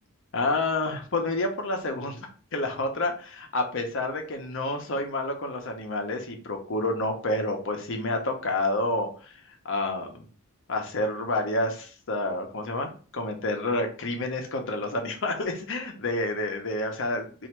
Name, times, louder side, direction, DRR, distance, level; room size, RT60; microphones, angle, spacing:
voice 1, 0.3-10.3 10.7-17.5, left 2 dB, 60° left, 4 dB, 0.9 m, -29 dB
3.1 x 2.7 x 4.5 m, 0.39 s
head